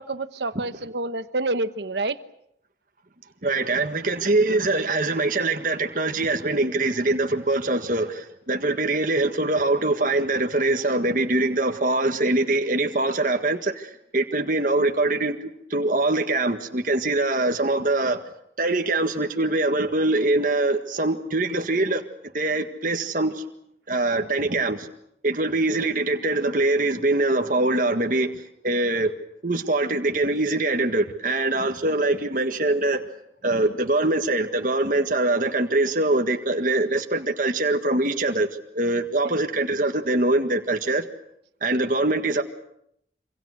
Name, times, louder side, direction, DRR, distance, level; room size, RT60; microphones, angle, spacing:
voice 1, 0.0-2.2 25.8-25.9 39.2-39.3, right 2 dB, 75° right, 12 dB, 1.1 m, -28 dB
voice 2, 3.4-18.2 18.6-22.0 22.3-23.4 23.9-24.9 25.2-29.1 29.4-33.0 33.4-41.0 41.6-42.4, right 2 dB, 50° right, 5 dB, 1.7 m, -23 dB
26.5 x 25.0 x 6.5 m, 0.76 s
head